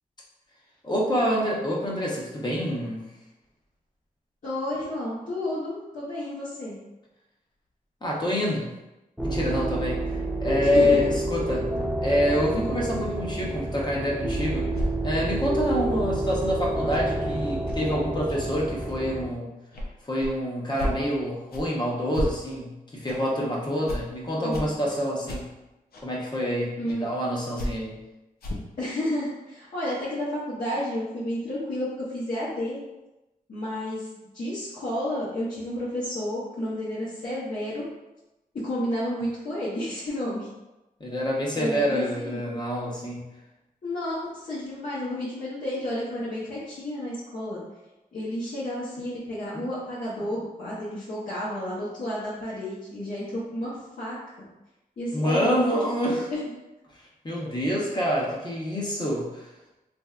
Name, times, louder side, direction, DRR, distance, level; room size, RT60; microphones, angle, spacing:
voice 1, 0.8-3.0 8.0-8.7 9.2-11.7 12.0-14.7 15.0-19.5 20.0-25.4 26.0-27.9 41.0-43.2 49.5-49.6 55.1-56.3 57.2-59.5, equal, 30° left, -4 dB, 0.9 m, -27 dB
voice 2, 4.4-6.8 10.7-11.0 24.4-24.7 26.8-27.1 28.8-32.8 33.5-34.1 34.3-37.9 38.6-40.5 41.5-42.4 43.8-47.6 48.1-54.2 55.0-55.6 56.0-56.5, left 1 dB, 60° left, -10 dB, 0.9 m, -31 dB
sound 1, 9.2-19.3, right 1 dB, 5° right, 0.5 m, -29 dB
sound 2, 14.7-14.9 16.3-16.4 16.9-17.0 17.7-17.8 18.3-18.4 18.9-19.0 19.7-19.9 20.2-20.3 20.8-21.0 21.5-21.6 22.1-22.3 23.1-23.2 23.9-24.0 24.5-24.7 25.3-25.4 25.9-26.0 26.9-27.0 27.6-27.7 28.4-28.7, left 1 dB, 85° left, 0.5 m, -31 dB
3.1 x 2.6 x 2.3 m, 0.99 s
cardioid pair, 70°, 15 cm